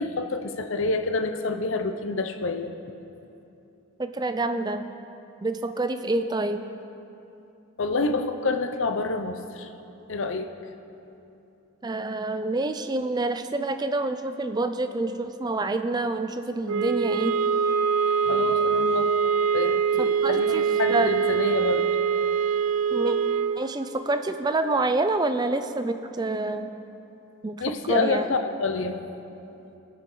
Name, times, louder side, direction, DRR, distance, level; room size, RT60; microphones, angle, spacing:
voice 1, 0.0-2.7 7.8-9.7 10.1-10.5 18.3-21.9 27.6-29.0, left 3 dB, 60° left, 7 dB, 0.6 m, -28 dB
voice 2, 4.0-4.9 5.4-6.6 11.8-17.4 20.0-21.1 22.9-23.2 23.6-26.7 27.4-28.3, right 2 dB, 20° right, 9 dB, 0.4 m, -27 dB
sound 1, 16.6-23.6, right 6 dB, 85° right, 0.4 m, -23 dB
19.5 x 6.9 x 3.9 m, 2.8 s
head